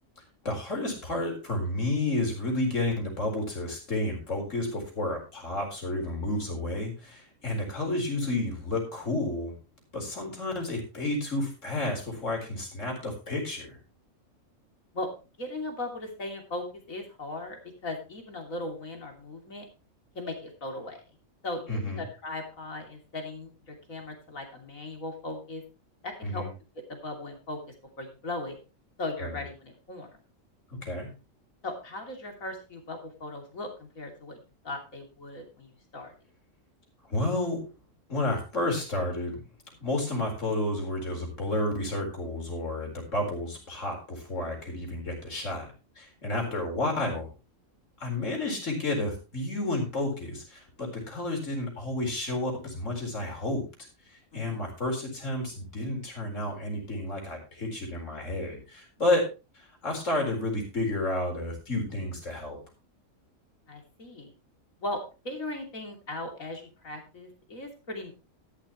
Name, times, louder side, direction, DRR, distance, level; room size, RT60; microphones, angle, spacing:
voice 1, 0.4-9.5 9.9-13.8 21.7-22.0 26.2-26.5 29.2-29.3 30.7-31.1 37.1-37.7 38.1-39.4 39.8-45.7 46.0-47.3 48.0-53.6 54.1-59.3 59.5-62.6, left 2 dB, 70° left, 1 dB, 4.7 m, -31 dB
voice 2, 15.4-19.7 20.1-21.0 21.4-25.6 26.0-26.4 26.9-28.6 29.0-30.2 31.6-36.1 46.4-46.6 54.3-54.7 63.7-64.3 64.8-68.1, left 2 dB, 85° left, 2 dB, 3.4 m, -38 dB
13.0 x 11.5 x 3.0 m, 0.30 s
omnidirectional pair, 1.4 m